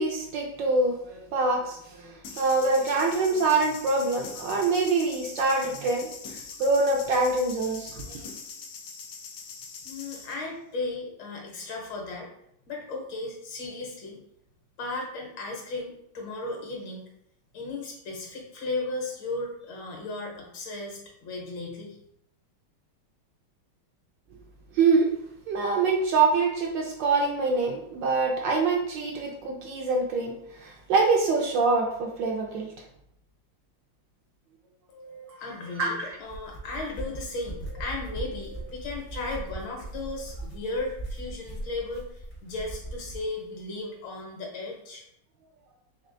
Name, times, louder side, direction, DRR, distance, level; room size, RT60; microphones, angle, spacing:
voice 1, 0.0-6.1 6.6-8.2 24.7-25.1 25.5-32.7 35.3-35.4 35.8-36.2, right 3 dB, 75° right, 1 dB, 1.1 m, -25 dB
sound 1, 2.2-10.4, left 5 dB, 85° left, 0.8 m, -43 dB
voice 2, 9.8-12.3 12.7-14.2 14.8-17.0 17.5-22.0 34.9-45.0, left 2 dB, 70° left, 0 dB, 1.7 m, -35 dB
sound 2, 36.1-43.3, right 2 dB, 50° left, 0.4 m, -39 dB
4.3 x 3.4 x 2.5 m, 0.74 s
omnidirectional pair, 2.3 m